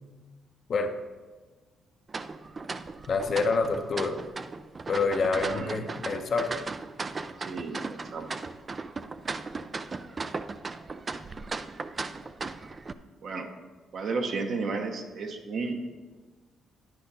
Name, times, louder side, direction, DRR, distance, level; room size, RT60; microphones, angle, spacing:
sound 1, 2.1-12.9, right 4 dB, 35° right, 0.4 m, -37 dB
voice 1, 3.1-4.2 4.9-6.6, left 4 dB, 50° left, 5 dB, 0.8 m, -27 dB
voice 2, 5.4-5.8 7.4-8.3 13.2-13.5 13.9-15.8, right 4 dB, 60° right, 4 dB, 1.1 m, -33 dB
10.5 x 5.2 x 4.2 m, 1.3 s
cardioid pair, 90°, 0 cm